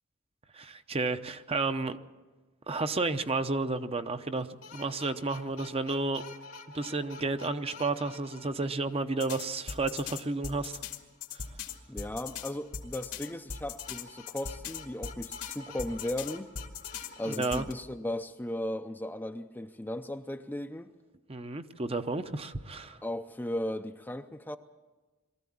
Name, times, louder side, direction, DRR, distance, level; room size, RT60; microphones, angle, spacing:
voice 1, 0.5-2.0 2.7-6.2 6.7-10.8 11.3-11.4 17.2-17.6 21.3-23.0, right 3 dB, 25° right, 0.8 m, -32 dB
sound 1, 4.4-8.9 9.2-17.7, left 6 dB, 85° left, 2.3 m, -42 dB
voice 2, 11.9-16.5 17.2-20.9 23.0-24.6, left 1 dB, 10° left, 0.5 m, -36 dB
22.5 x 14.5 x 8.7 m
head